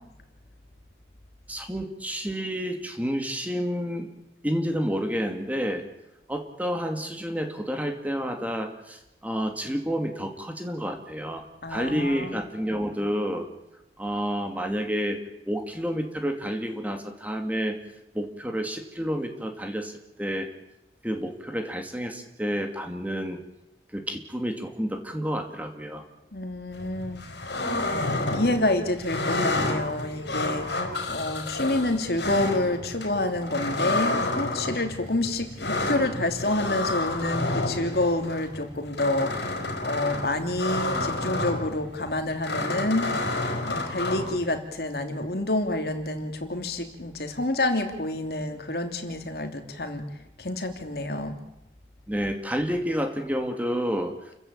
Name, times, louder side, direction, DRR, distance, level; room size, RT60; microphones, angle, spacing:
voice 1, 1.5-4.1 4.4-5.9 6.3-11.4 11.7-13.5 14.0-15.2 15.5-17.8 18.1-20.5 21.0-23.4 23.9-26.0 52.1-54.2, equal, 10° right, 5 dB, 2.5 m, -29 dB
voice 2, 11.6-12.4 26.3-27.3 28.3-30.8 31.1-39.3 39.8-43.1 43.6-50.0 50.4-51.4, left 2 dB, 60° left, 6 dB, 2.9 m, -28 dB
sound 1, 26.7-44.6, left 2 dB, 75° left, 4.5 m, -30 dB
29.5 x 15.5 x 8.8 m, 0.88 s
head